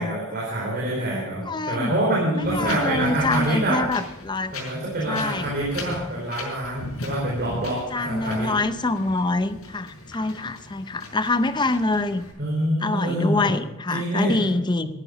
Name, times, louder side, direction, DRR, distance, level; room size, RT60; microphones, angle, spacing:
voice 1, 0.0-3.8 4.5-8.5 12.4-13.6 13.9-14.5 14.8-14.9, right 1 dB, 45° right, -5 dB, 4.5 m, -26 dB
voice 2, 1.5-1.9 2.4-4.5 5.1-5.5 7.9-12.3 12.8-14.9, left 2 dB, 20° left, 11 dB, 0.6 m, -25 dB
Wind, 2.4-12.3, left 2 dB, 75° left, 6.0 m, -38 dB
14.5 x 11.5 x 5.3 m, 0.92 s
head